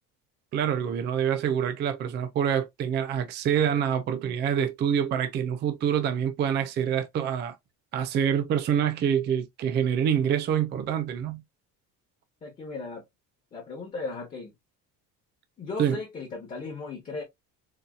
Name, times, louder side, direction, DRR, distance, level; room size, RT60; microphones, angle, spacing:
voice 1, 0.5-7.6 7.9-11.4 15.8-16.0, right 8 dB, 30° right, 0.4 m, -26 dB
voice 2, 12.4-13.0 13.5-14.5 15.6-17.2, left 3 dB, 20° left, 1.1 m, -36 dB
4.1 x 2.7 x 2.3 m
cardioid pair, 175°, 35 cm